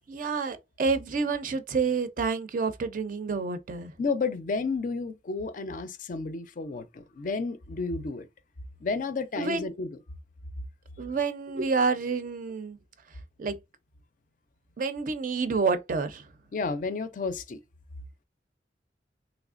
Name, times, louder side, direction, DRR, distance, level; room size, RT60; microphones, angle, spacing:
voice 1, 0.1-3.9 9.4-9.7 11.0-12.8 13.4-13.6 14.8-16.3, right 4 dB, 45° right, 0.4 m, -28 dB
voice 2, 4.0-8.3 8.8-9.9 16.5-17.6, left 4 dB, 45° left, 0.4 m, -31 dB
3.3 x 3.0 x 2.4 m
head